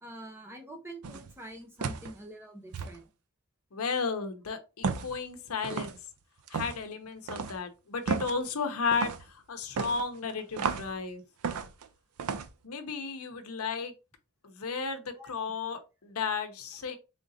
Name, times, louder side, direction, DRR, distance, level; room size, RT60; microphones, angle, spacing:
voice 1, 0.0-3.1 15.1-15.3, right 1 dB, 10° right, 0.8 m, -46 dB
sound 1, 1.0-1.3 1.8-2.1 2.7-3.0 4.8-5.2 5.6-6.0 6.5-6.8 7.3-7.6 8.1-8.4 8.9-9.2 9.8-10.9 11.4-11.9 12.2-12.5, right 5 dB, 90° right, 0.5 m, -33 dB
voice 2, 3.7-6.0 6.5-11.2 12.6-13.9 14.4-17.0, left 5 dB, 85° left, 0.8 m, -34 dB
3.7 x 3.6 x 2.7 m
head